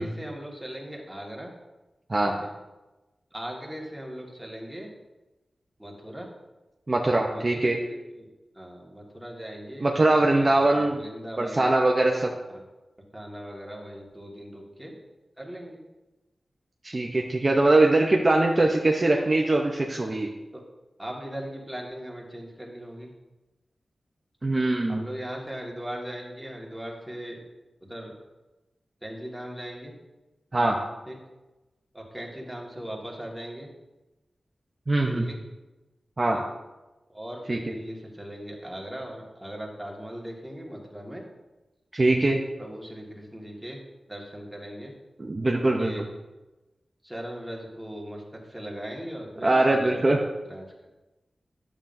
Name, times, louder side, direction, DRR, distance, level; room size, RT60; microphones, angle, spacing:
voice 1, 0.0-1.5 2.3-2.5 3.3-4.9 5.8-6.3 7.3-8.3 8.5-11.7 12.5-12.6 13.1-14.9 15.4-15.8 20.5-20.6 21.0-23.1 24.9-27.4 27.8-28.2 29.0-29.9 31.1-31.2 31.9-33.7 35.0-35.4 36.3-36.4 37.1-41.2 42.6-43.8 44.1-44.9 45.6-46.0 47.0-50.2 50.5-50.7, equal, 5° right, -2 dB, 1.7 m, -39 dB
voice 2, 6.9-7.8 9.8-11.0 11.4-12.3 16.8-20.3 24.4-25.0 30.5-30.8 34.9-35.3 36.2-36.4 37.5-37.6 41.9-42.4 45.2-45.9 49.4-50.2, right 2 dB, 35° right, 0 dB, 0.7 m, -22 dB
10.5 x 7.2 x 2.6 m, 1.1 s
wide cardioid pair, 90°, 0 cm